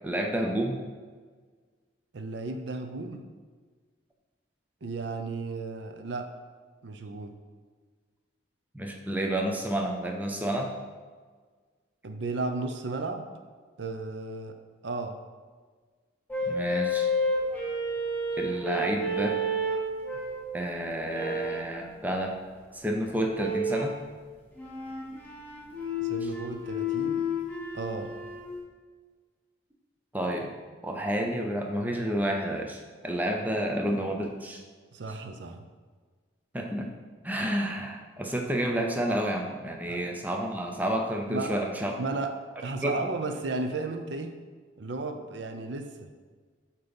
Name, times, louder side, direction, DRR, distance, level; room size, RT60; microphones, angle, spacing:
voice 1, 0.0-0.8 8.7-10.7 16.5-17.1 18.4-19.4 20.5-22.3 22.7-24.0 30.1-30.5 30.8-34.6 36.5-36.9 37.2-41.9 42.8-43.0, right 1 dB, 10° right, 2 dB, 0.5 m, -30 dB
voice 2, 2.1-3.2 4.8-6.3 6.8-7.3 12.0-13.3 13.8-14.6 14.8-15.2 26.0-27.3 27.7-28.1 34.9-35.6 39.9-40.0 41.3-41.5 42.0-44.4 44.8-46.1, right 3 dB, 65° right, 6 dB, 0.5 m, -34 dB
sound 1, 16.3-20.5 21.1-21.7 23.3-24.0 24.6-28.5, left 1 dB, 10° left, 1.0 m, -31 dB
7.6 x 2.9 x 5.2 m, 1.5 s
head